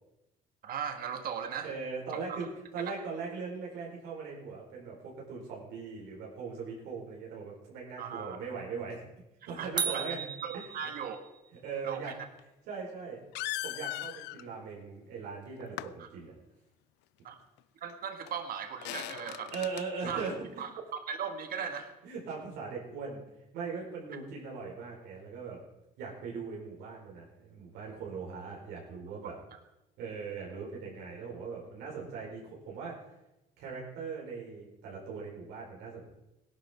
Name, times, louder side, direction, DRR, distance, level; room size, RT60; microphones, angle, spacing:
voice 1, 0.6-1.7 2.1-2.4 8.0-8.4 9.6-10.1 10.4-11.2 11.8-12.1 16.0-16.1 17.2-17.4 17.8-19.5 20.0-20.2 20.6-21.9 29.2-29.6, right 7 dB, 60° right, 6 dB, 1.7 m, -38 dB
voice 2, 1.6-2.5 2.7-9.0 9.4-10.2 10.5-10.6 11.6-12.1 12.7-13.2 13.6-16.3 18.9-19.0 19.5-20.3 22.0-23.2 23.5-25.6 26.0-29.4 30.0-33.0 33.6-36.1, right 5 dB, 90° right, -3 dB, 4.8 m, -40 dB
sound 1, 9.8-11.4, right 6 dB, 25° right, 0.9 m, -35 dB
sound 2, 12.4-12.5 13.3-14.4 15.6-15.9 17.9-18.0 18.3-18.4 18.8-19.8, left 17 dB, 85° left, 0.5 m, -38 dB
17.5 x 11.5 x 4.5 m, 0.94 s
cardioid pair, 110°, 17 cm